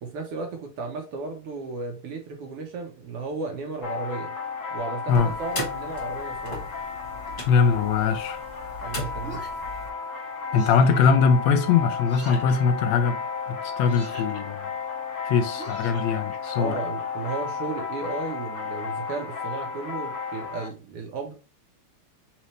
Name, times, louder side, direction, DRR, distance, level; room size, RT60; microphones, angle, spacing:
voice 1, 0.0-4.3 4.7-6.7 8.8-9.4 16.6-21.3, right 4 dB, 65° right, 1.5 m, -34 dB
sound 1, 3.8-20.7, left 5 dB, 45° left, 1.5 m, -33 dB
sound 2, 5.1-9.9, left 1 dB, 25° left, 1.4 m, -38 dB
voice 2, 7.5-8.4 10.5-14.7 15.2-16.8, left 6 dB, 80° left, 1.7 m, -22 dB
sound 3, 9.2-9.7 10.5-11.0 12.0-12.6 13.8-14.4 15.5-16.4, right 1 dB, 5° left, 1.4 m, -43 dB
4.3 x 3.8 x 3.2 m
omnidirectional pair, 3.3 m